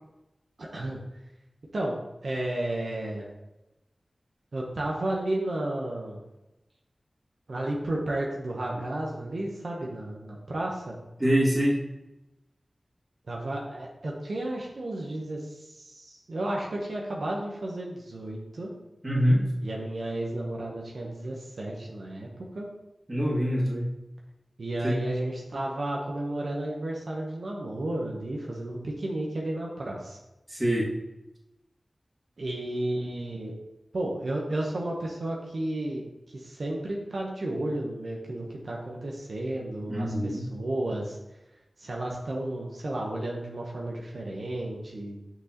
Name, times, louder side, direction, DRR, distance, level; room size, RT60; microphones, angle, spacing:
voice 1, 0.6-1.0 1.7-3.3 4.5-6.2 7.5-11.0 13.3-18.7 19.6-22.3 22.5-22.7 24.6-30.2 32.4-33.5 33.9-36.0 36.3-41.2 41.8-45.2, right 1 dB, 80° right, -2 dB, 1.0 m, -32 dB
voice 2, 11.2-11.8 19.0-19.5 23.1-23.9 24.8-25.0 30.5-30.9 39.9-40.4, equal, 30° right, -5 dB, 2.0 m, -24 dB
6.0 x 6.0 x 3.0 m, 0.97 s
wide cardioid pair, 60°, 0 cm